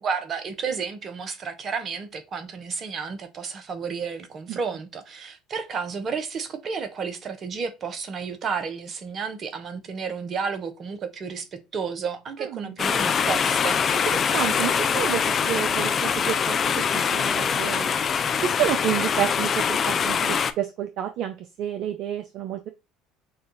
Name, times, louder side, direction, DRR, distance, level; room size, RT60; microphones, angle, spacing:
voice 1, 0.0-13.8, right 5 dB, 40° right, 1.0 m, -32 dB
sound 1, 12.8-20.5, left 7 dB, 40° left, 0.4 m, -23 dB
voice 2, 14.3-17.9 18.4-22.7, right 11 dB, 55° right, 0.5 m, -29 dB
6.1 x 2.5 x 3.0 m
hypercardioid pair, 65°, 0 cm